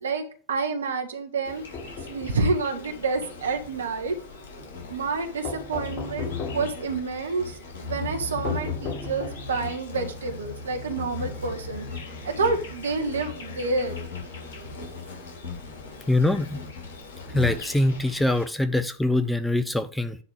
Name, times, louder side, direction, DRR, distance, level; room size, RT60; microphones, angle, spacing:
voice 1, 0.0-1.6 2.1-4.2 4.9-11.8 12.2-14.0, right 4 dB, 70° right, 1.6 m, -28 dB
Insect, 1.4-18.4, left 4 dB, 55° left, 3.0 m, -38 dB
sound 1, 1.5-2.5 5.4-6.8 8.4-9.6, left 3 dB, 35° left, 1.0 m, -36 dB
voice 2, 16.1-16.6 17.3-20.2, left 1 dB, 5° left, 0.6 m, -23 dB
10.0 x 3.5 x 7.0 m
figure-of-eight pair, 90°, 0 cm